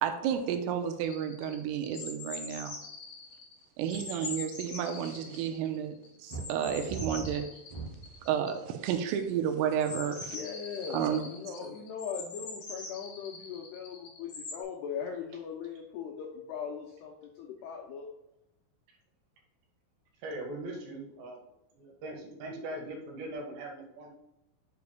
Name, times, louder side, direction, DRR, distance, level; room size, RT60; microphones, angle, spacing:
voice 1, 0.0-2.8 3.8-7.4 8.2-10.4 10.9-11.2, right 8 dB, 90° right, 6 dB, 3.4 m, -31 dB
sound 1, 1.0-3.6 3.9-14.6, left 4 dB, 50° left, 3.1 m, -43 dB
sound 2, 6.3-8.2 8.9-9.3, right 3 dB, 50° right, 1.8 m, -40 dB
voice 2, 10.3-18.1, left 7 dB, 85° left, 1 dB, 2.3 m, -39 dB
voice 3, 20.2-21.4 21.7-24.1, right 1 dB, 65° right, 0 dB, 3.3 m, -40 dB
9.6 x 6.9 x 2.3 m, 0.88 s
omnidirectional pair, 5.8 m